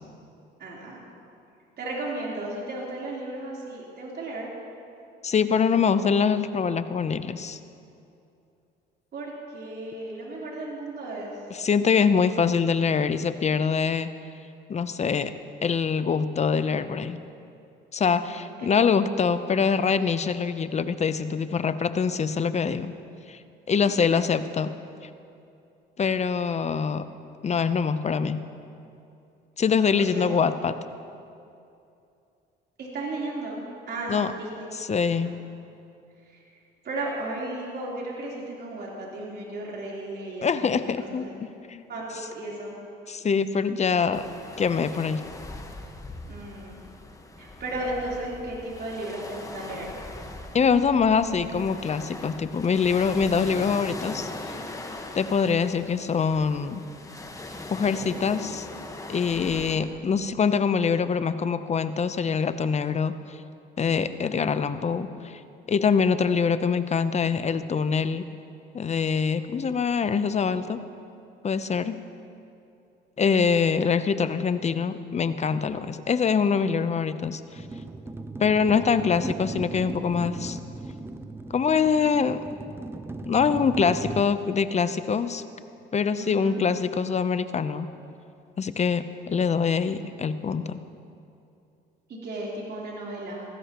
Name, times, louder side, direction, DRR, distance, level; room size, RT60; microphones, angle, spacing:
voice 1, 0.6-1.1 1.8-4.5 9.1-11.3 18.3-18.7 23.8-23.9 29.9-30.3 32.8-34.6 35.1-35.3 36.3-36.4 36.8-40.9 41.2-41.3 41.9-42.8 46.3-46.8 47.4-50.0 59.3-59.7 86.2-86.6 92.1-93.5, right 2 dB, 50° right, -5 dB, 3.8 m, -35 dB
voice 2, 5.2-7.6 11.5-14.1 14.7-15.3 15.6-17.2 17.9-22.9 23.3-23.4 23.7-24.7 26.0-27.0 27.4-28.4 29.6-30.7 34.1-34.3 34.7-35.4 40.4-41.8 43.1-44.2 44.6-45.2 50.5-54.5 55.1-56.8 57.7-58.7 59.1-63.4 63.8-65.4 65.7-68.3 68.7-70.8 71.4-72.0 73.2-77.6 78.4-80.6 81.5-82.4 83.3-85.4 85.9-87.9 88.6-90.8, left 6 dB, 30° left, 12 dB, 0.7 m, -24 dB
sound 1, 44.1-59.8, left 2 dB, 15° left, 1.3 m, -40 dB
sound 2, 77.6-84.2, right 2 dB, 10° right, 0.6 m, -37 dB
19.0 x 15.5 x 3.0 m, 2.6 s
supercardioid pair, 80°, 21 cm